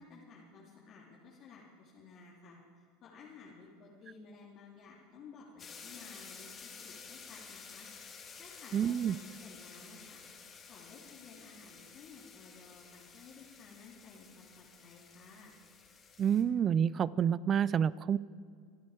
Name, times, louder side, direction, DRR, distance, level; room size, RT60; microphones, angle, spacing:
voice 1, 0.0-7.9 8.4-10.2 10.7-15.5, left 4 dB, 45° left, -5 dB, 2.8 m, -55 dB
sound 1, 5.6-16.4, left 5 dB, 30° left, 2.6 m, -52 dB
voice 2, 8.7-9.2 16.2-18.2, right 8 dB, 35° right, 20 dB, 0.5 m, -28 dB
25.0 x 11.0 x 4.9 m, 2.2 s
hypercardioid pair, 90°, 0 cm